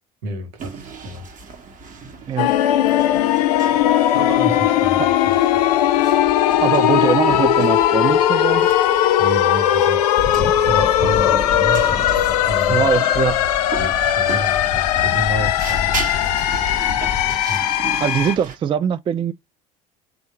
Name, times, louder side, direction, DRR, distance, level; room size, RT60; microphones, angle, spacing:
voice 1, 0.2-1.3 4.1-5.4 9.2-10.0 10.6-11.9 12.5-13.0 13.8-16.0 17.5-17.7, right 1 dB, 75° right, 1.1 m, -30 dB
sound 1, 0.6-18.6, right 5 dB, 40° right, 1.2 m, -37 dB
sound 2, 2.4-18.4, left 11 dB, 75° left, 0.4 m, -18 dB
voice 2, 6.6-8.7 12.7-13.4 18.0-19.3, right 8 dB, 25° right, 0.3 m, -21 dB
sound 3, 10.2-17.4, left 5 dB, 40° left, 0.7 m, -30 dB
3.6 x 2.4 x 4.3 m
hypercardioid pair, 65°, 20 cm